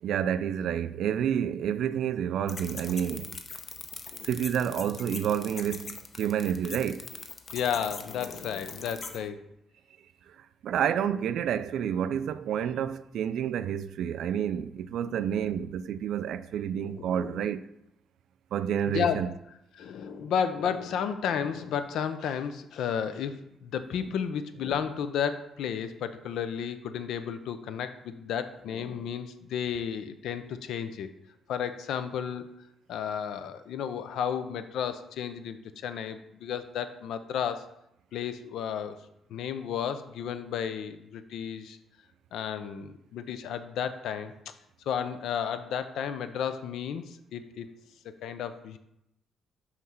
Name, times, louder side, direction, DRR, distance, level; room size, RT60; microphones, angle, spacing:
voice 1, 0.0-3.3 4.2-7.1 10.6-17.6 18.5-19.3, right 9 dB, 75° right, 0.3 m, -29 dB
sound 1, 2.5-9.2, left 4 dB, 40° left, 0.7 m, -42 dB
voice 2, 7.5-9.4 15.1-15.6 16.9-17.5 18.9-19.2 19.7-23.4 23.6-31.1 31.5-32.5 32.9-35.6 35.8-37.6 38.1-39.0 39.3-41.8 42.3-44.3 44.9-47.7 48.2-48.8, left 8 dB, 80° left, 0.5 m, -32 dB
5.7 x 3.2 x 5.6 m
cardioid pair, 90°, 0 cm